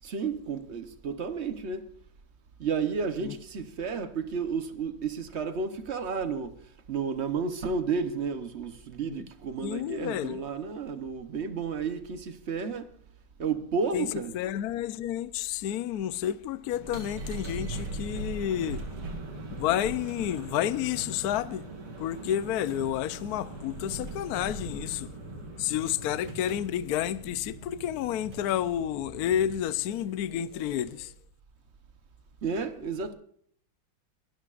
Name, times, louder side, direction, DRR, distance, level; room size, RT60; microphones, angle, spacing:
voice 1, 0.0-1.9 2.6-6.6 6.9-12.9 13.4-14.4 32.4-33.1, right 5 dB, 50° right, 0.8 m, -32 dB
voice 2, 9.6-10.4 13.9-14.1 14.3-18.8 19.5-21.6 22.0-25.1 25.6-31.1, left 11 dB, 70° left, 0.9 m, -30 dB
sound 1, 16.7-31.1, right 2 dB, 90° right, 3.2 m, -40 dB
22.5 x 13.0 x 2.5 m
omnidirectional pair, 2.3 m